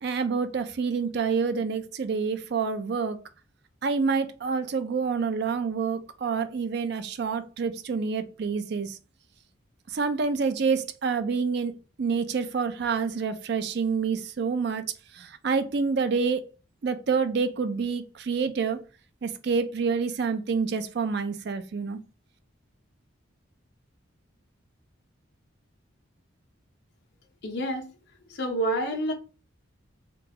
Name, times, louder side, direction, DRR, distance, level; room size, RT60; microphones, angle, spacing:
voice 1, 0.0-3.2 3.8-9.0 9.9-14.9 15.1-16.4 16.8-18.8 19.2-22.0, right 5 dB, 55° right, 0.4 m, -27 dB
voice 2, 27.4-27.9 28.3-29.1, right 1 dB, 55° left, 0.7 m, -28 dB
3.8 x 2.3 x 2.8 m
head